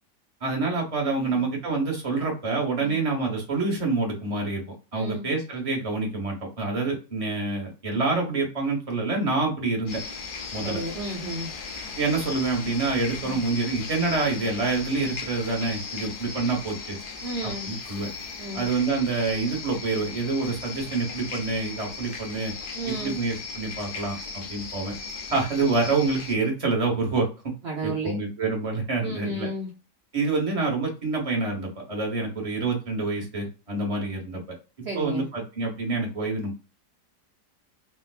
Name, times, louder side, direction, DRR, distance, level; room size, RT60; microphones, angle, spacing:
voice 1, 0.4-10.0 10.5-10.8 12.0-17.0 17.4-18.1 18.5-22.5 22.9-24.9 25.3-27.5 27.8-29.5 30.1-34.4 34.9-36.6, right 3 dB, 25° right, 0 dB, 1.0 m, -27 dB
voice 2, 4.9-5.3 10.6-11.5 13.2-13.4 17.2-17.7 18.4-18.6 22.7-23.2 27.6-28.2 29.0-29.7 34.8-35.3, right 2 dB, 50° right, -1 dB, 0.8 m, -33 dB
sound 1, 9.9-26.3, left 4 dB, 80° left, 0.4 m, -37 dB
4.4 x 2.2 x 2.4 m, 0.32 s
omnidirectional pair, 1.8 m